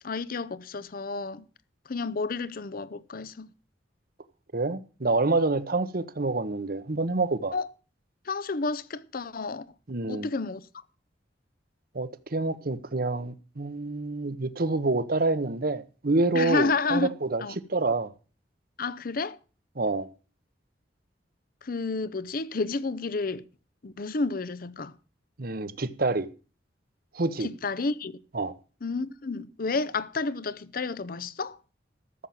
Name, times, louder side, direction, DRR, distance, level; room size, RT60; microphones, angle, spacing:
voice 1, 0.0-1.5 1.9-3.5 7.5-7.7 8.3-9.7 10.1-10.6 16.3-17.1 17.4-17.6 18.8-19.4 21.6-23.4 23.8-24.9 27.4-28.2 28.8-31.6, left 3 dB, 50° left, 0.7 m, -30 dB
voice 2, 4.5-7.5 9.9-10.3 11.9-17.4 17.7-18.1 19.8-20.1 25.4-26.3 27.1-27.5 28.3-28.5, right 3 dB, 55° right, 1.0 m, -27 dB
13.5 x 7.3 x 7.5 m
head